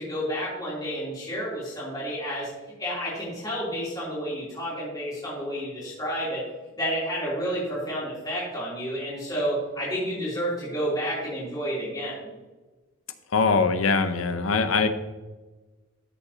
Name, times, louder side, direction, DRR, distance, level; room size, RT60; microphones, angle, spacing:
voice 1, 0.0-2.5 2.8-6.4 6.8-12.3, equal, 20° left, -8 dB, 3.0 m, -30 dB
voice 2, 13.3-14.9, left 4 dB, 80° left, 9 dB, 0.8 m, -22 dB
13.0 x 6.8 x 2.8 m, 1.2 s
head